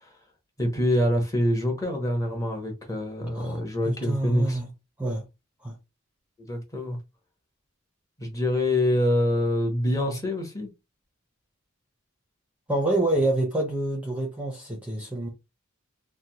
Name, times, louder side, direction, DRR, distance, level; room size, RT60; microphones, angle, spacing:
voice 1, 0.6-4.6 6.5-7.0 8.2-10.7, left 1 dB, 15° left, 0.8 m, -25 dB
voice 2, 3.3-4.7 5.0-5.2 5.6-5.8 12.7-15.3, right 2 dB, 5° right, 0.6 m, -27 dB
3.2 x 2.1 x 2.7 m
head